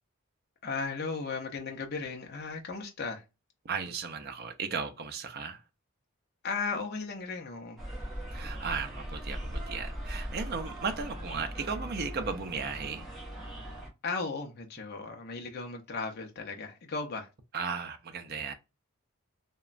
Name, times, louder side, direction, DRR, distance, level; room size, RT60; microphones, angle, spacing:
voice 1, 0.6-3.2 6.4-7.8 14.0-17.3, left 4 dB, 45° left, 0.5 m, -36 dB
voice 2, 3.6-5.6 8.3-13.1 17.5-18.5, right 5 dB, 45° right, 0.5 m, -35 dB
sound 1, 7.8-13.9, equal, ahead, 1.0 m, -39 dB
2.9 x 2.1 x 2.4 m
head